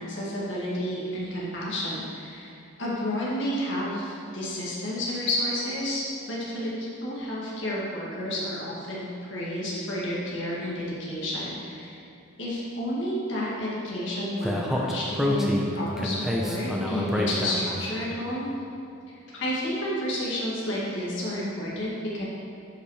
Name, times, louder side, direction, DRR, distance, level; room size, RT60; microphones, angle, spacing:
voice 1, 0.1-12.0 12.4-18.5 19.1-22.3, left 1 dB, 65° left, -6 dB, 2.3 m, -31 dB
Speech, 14.4-17.8, left 1 dB, ahead, 0.9 m, -27 dB
12.5 x 5.9 x 5.0 m, 2.6 s
head